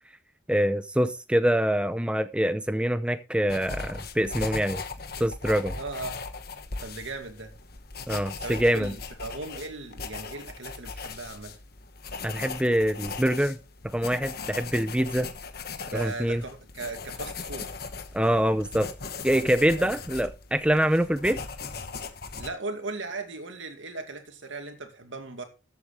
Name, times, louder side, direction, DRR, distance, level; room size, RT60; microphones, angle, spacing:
voice 1, 0.5-4.8 5.2-5.7 8.1-8.9 12.2-13.6 13.9-15.3 15.9-16.4 18.1-18.9 19.2-21.4, equal, 5° right, 0.6 m, -25 dB
sound 1, 3.5-22.5, left 4 dB, 50° left, 1.3 m, -39 dB
voice 2, 5.7-6.2 6.8-7.5 8.4-11.6 15.8-17.8 19.7-19.9 22.4-25.4, right 3 dB, 80° right, 2.3 m, -37 dB
14.0 x 8.2 x 3.3 m
head